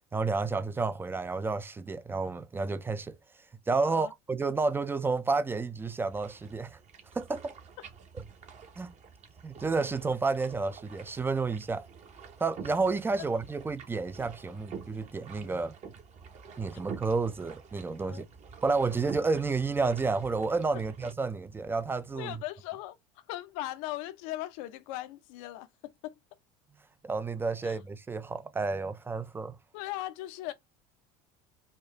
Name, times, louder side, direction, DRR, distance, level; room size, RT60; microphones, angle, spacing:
voice 1, 0.1-3.2 3.7-6.8 7.1-7.6 8.8-8.9 9.4-11.9 12.4-15.8 16.6-18.3 18.6-22.4 27.0-29.6, right 4 dB, 10° right, 0.4 m, -30 dB
sound 1, 6.1-21.1, right 6 dB, 40° right, 1.0 m, -48 dB
voice 2, 22.1-26.1 27.6-27.8 29.7-30.5, left 15 dB, 75° left, 0.7 m, -39 dB
4.3 x 2.4 x 3.1 m
supercardioid pair, 100°, 18 cm